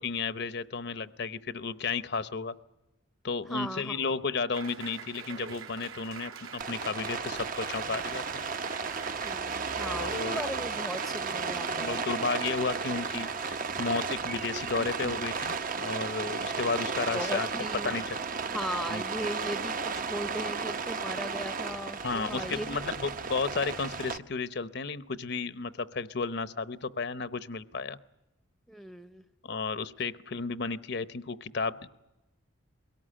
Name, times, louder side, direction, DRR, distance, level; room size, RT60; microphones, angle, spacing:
voice 1, 0.0-2.5 3.2-8.2 9.9-10.4 11.5-17.5 17.8-18.2 18.9-19.0 22.0-28.0 29.4-31.9, left 4 dB, 50° left, 14 dB, 0.8 m, -33 dB
voice 2, 3.5-4.0 9.2-12.0 17.1-18.0 18.5-22.9 28.7-29.2, equal, ahead, 11 dB, 0.8 m, -38 dB
Applause, 4.5-15.9, right 6 dB, 80° right, 3.0 m, -47 dB
Rain, 6.6-24.2, right 5 dB, 40° right, 0.8 m, -34 dB
22.5 x 17.5 x 10.0 m, 0.99 s
head